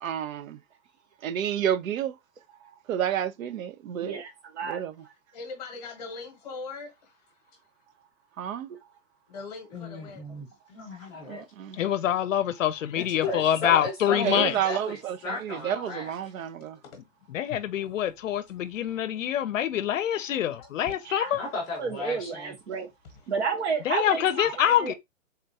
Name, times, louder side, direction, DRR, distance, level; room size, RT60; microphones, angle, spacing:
voice 1, 0.0-0.6 1.2-2.2 2.9-4.2 4.7-4.9 8.4-8.7 11.3-11.8 14.2-16.8, right 10 dB, 90° right, 0.5 m, -30 dB
voice 2, 4.0-4.8 19.2-19.3 21.0-21.3 21.8-22.9 23.3-24.9, right 5 dB, 55° right, 0.7 m, -31 dB
voice 3, 5.3-7.3 9.3-10.4 16.7-17.0 17.7-18.2 20.6-20.9, left 4 dB, 30° left, 0.9 m, -42 dB
voice 4, 9.7-11.4 12.9-15.0 15.2-16.1 21.4-22.5, left 3 dB, 5° left, 0.5 m, -35 dB
voice 5, 11.8-14.5 17.3-21.4 23.9-24.9, left 11 dB, 70° left, 0.6 m, -25 dB
3.6 x 2.3 x 2.6 m
hypercardioid pair, 165°, 40 cm